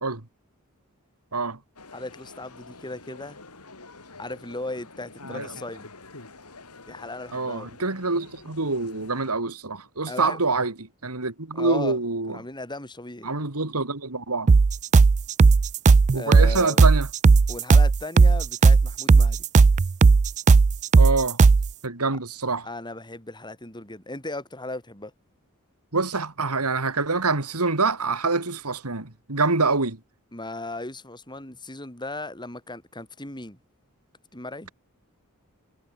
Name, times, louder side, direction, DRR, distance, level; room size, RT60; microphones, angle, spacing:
sound 1, 1.8-9.3, left 3 dB, 90° left, 4.9 m, -46 dB
voice 1, 1.9-3.4 4.2-5.9 6.9-7.7 10.0-10.4 11.5-12.0 12.3-13.3 16.1-16.8 17.5-19.5 22.6-25.1 30.3-33.6 34.3-34.7, left 2 dB, 20° left, 7.4 m, -36 dB
voice 2, 7.3-12.4 13.2-14.5 16.1-17.1 21.0-21.4 21.8-22.7 25.9-30.0, right 3 dB, 80° right, 2.6 m, -26 dB
sound 2, 14.5-21.7, right 4 dB, 35° right, 0.3 m, -15 dB
head